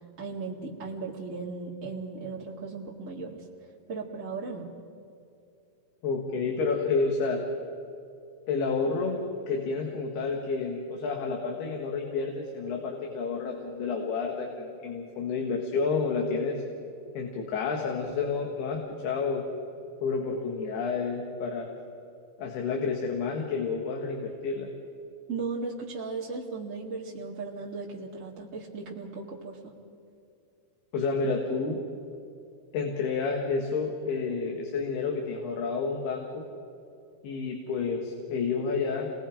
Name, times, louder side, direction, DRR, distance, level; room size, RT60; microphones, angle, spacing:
voice 1, 0.2-4.7 25.3-29.7, right 4 dB, 30° right, -4 dB, 1.5 m, -37 dB
voice 2, 6.0-7.4 8.5-9.2 9.5-16.6 17.1-19.4 20.0-21.7 22.4-24.7 30.9-31.8 32.7-36.4 37.2-39.1, left 4 dB, 75° left, 1 dB, 3.7 m, -30 dB
29.0 x 21.0 x 5.1 m, 2.5 s
omnidirectional pair, 4.6 m